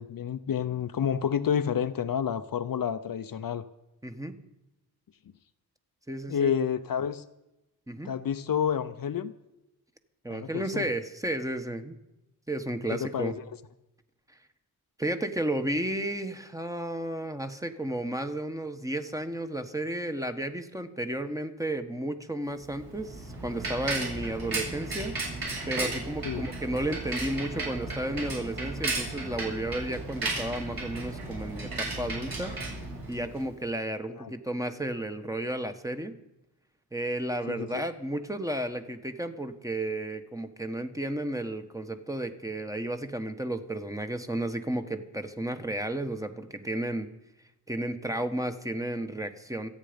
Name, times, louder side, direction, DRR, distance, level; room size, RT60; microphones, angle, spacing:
voice 1, 0.0-3.6 6.3-7.2 8.0-9.3 10.3-10.9 12.9-13.3 26.2-26.5 34.1-34.3 37.5-37.8, left 8 dB, 60° left, 11 dB, 0.7 m, -29 dB
voice 2, 4.0-4.4 6.1-6.5 7.9-8.1 10.2-11.9 12.5-13.4 15.0-25.1 25.7-32.5 33.1-36.1 36.9-47.1 47.7-49.7, right 1 dB, 10° right, 7 dB, 1.2 m, -33 dB
Bicycle, 22.6-33.5, right 2 dB, 65° right, 7.5 m, -34 dB
27.5 x 9.2 x 5.2 m, 0.93 s
wide cardioid pair, 125°, 39 cm